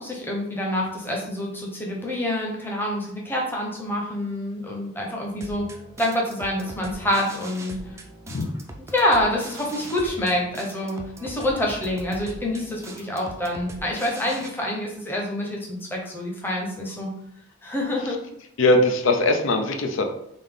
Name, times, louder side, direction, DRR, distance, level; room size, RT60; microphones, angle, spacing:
voice 1, 0.0-5.7 6.0-7.8 8.9-17.1 17.6-18.2, left 1 dB, 10° left, -2 dB, 0.7 m, -27 dB
sound 1, 5.4-14.5, right 1 dB, 15° right, 0.4 m, -41 dB
voice 2, 18.6-20.1, left 2 dB, 80° left, 5 dB, 0.5 m, -20 dB
3.5 x 2.7 x 3.6 m, 0.77 s
head